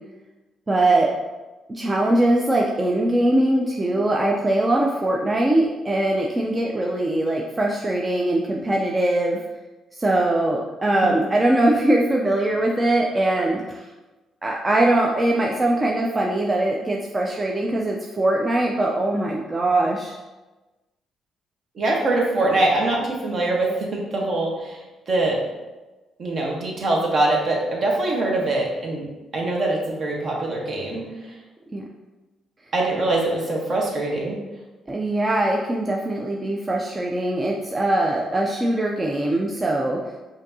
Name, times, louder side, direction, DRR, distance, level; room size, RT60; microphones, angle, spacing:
voice 1, 0.7-1.1 1.7-9.4 9.9-13.9 14.4-20.2 31.7-31.8 34.9-40.1, right 1 dB, 20° right, -1 dB, 0.4 m, -21 dB
voice 2, 21.7-25.4 26.2-29.1 29.3-31.3 32.7-34.4, right 2 dB, 50° right, -1 dB, 1.0 m, -23 dB
5.0 x 2.6 x 2.7 m, 1.1 s
cardioid pair, 90°, 0 cm